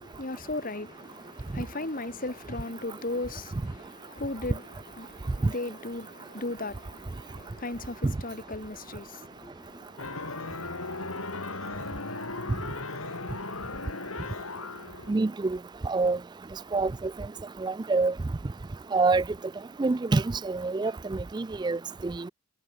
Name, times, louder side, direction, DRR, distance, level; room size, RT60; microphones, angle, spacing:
voice 1, 0.0-10.2, left 2 dB, 40° left, 1.7 m, -37 dB
sound 1, 10.0-15.1, left 3 dB, 85° left, 3.6 m, -37 dB
voice 2, 15.1-15.6 15.8-16.2 16.7-16.9 17.6-18.1 18.9-19.2 19.8-22.3, right 3 dB, 20° right, 0.3 m, -26 dB
head